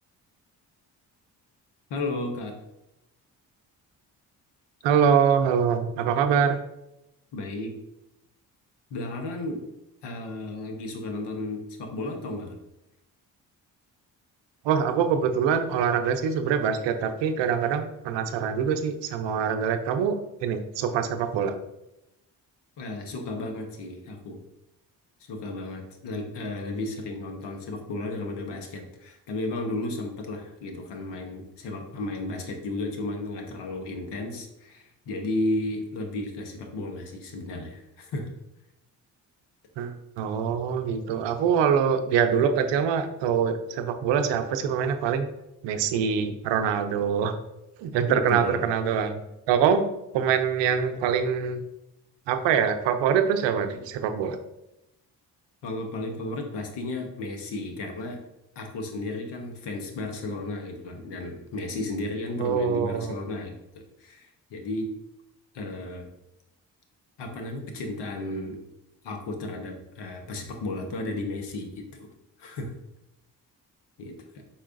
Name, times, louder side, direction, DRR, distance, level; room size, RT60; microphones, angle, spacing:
voice 1, 1.9-2.5 7.3-7.7 8.9-9.6 10.0-12.6 22.8-24.4 25.2-38.3 48.1-48.6 55.6-58.2 58.6-64.9 65.5-66.1 67.2-68.6 69.0-72.1 72.4-72.7 74.0-74.4, left 2 dB, 75° left, 4 dB, 1.0 m, -34 dB
voice 2, 4.8-6.6 14.6-21.5 39.8-45.3 45.6-47.3 47.8-49.2 49.5-49.9 50.1-51.6 52.3-54.4 62.4-63.1, right 7 dB, 80° right, 8 dB, 0.6 m, -24 dB
4.6 x 4.2 x 2.5 m, 0.90 s
supercardioid pair, 55°, 42 cm